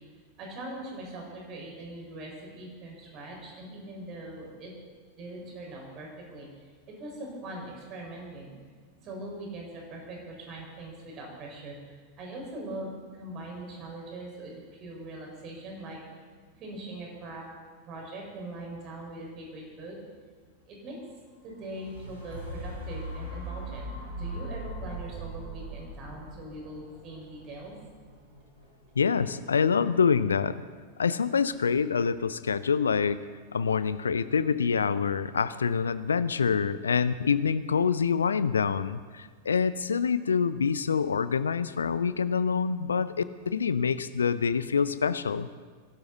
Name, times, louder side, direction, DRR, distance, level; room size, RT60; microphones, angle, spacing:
voice 1, 0.4-4.7 5.2-6.5 6.9-8.6 9.0-16.0 16.5-17.5 17.8-20.0 20.7-21.0 21.4-27.7, right 1 dB, 35° right, 0 dB, 4.9 m, -41 dB
sound 1, 21.5-29.6 30.1-30.2, right 1 dB, 75° right, 5.4 m, -40 dB
voice 2, 29.0-30.6 31.0-33.2 33.5-45.5, left 6 dB, 70° left, 15 dB, 0.5 m, -26 dB
21.5 x 12.0 x 4.0 m, 1.5 s
figure-of-eight pair, 90°, 0 cm